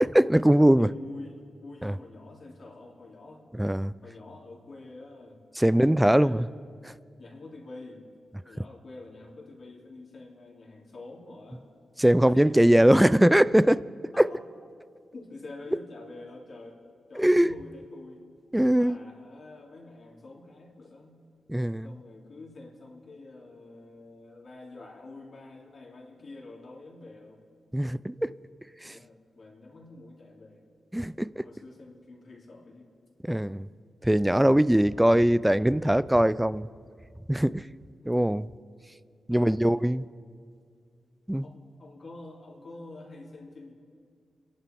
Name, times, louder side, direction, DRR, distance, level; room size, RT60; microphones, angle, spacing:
voice 1, 0.0-0.9 1.8-1.9 3.5-3.9 5.6-6.5 6.8-6.9 12.0-13.8 14.2-14.3 17.2-17.5 18.5-19.0 21.5-21.9 27.7-28.3 28.8-29.0 30.9-31.5 33.2-33.7 34.0-36.7 37.3-37.7 38.1-38.5 39.3-40.0 41.3-41.5, right 1 dB, 5° right, 19 dB, 0.4 m, -21 dB
voice 2, 0.6-3.5 4.0-5.9 6.2-6.4 7.2-8.0 8.4-11.7 12.2-12.6 14.1-14.4 15.1-16.8 17.1-18.2 18.7-21.2 21.8-27.4 28.9-30.6 31.3-32.9 38.0-38.2 39.3-39.9 41.4-43.7, left 2 dB, 55° left, -2 dB, 3.4 m, -47 dB
26.5 x 11.0 x 4.6 m, 2.2 s
cardioid pair, 75°, 0 cm